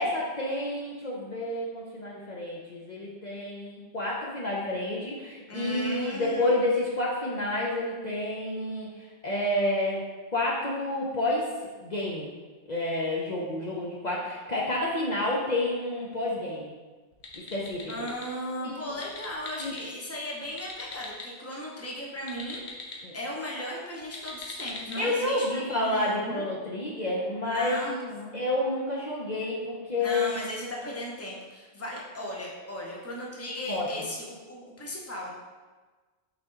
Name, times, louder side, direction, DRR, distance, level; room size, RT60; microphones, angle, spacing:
voice 1, 0.0-8.9 9.2-10.0 10.3-11.5 11.8-12.3 12.7-16.7 17.3-18.1 18.6-18.9 19.6-19.7 23.0-23.1 25.0-30.3 33.5-34.1, left 1 dB, 45° left, -5 dB, 0.9 m, -29 dB
voice 2, 5.5-6.6 17.9-26.5 27.4-28.4 30.0-35.3, equal, 15° left, -3 dB, 1.0 m, -37 dB
sound 1, 17.1-18.3 18.9-19.8 20.4-21.3 22.2-23.0 24.0-25.0, left 3 dB, 85° left, 1.2 m, -41 dB
6.1 x 4.3 x 4.0 m, 1.3 s
omnidirectional pair, 1.1 m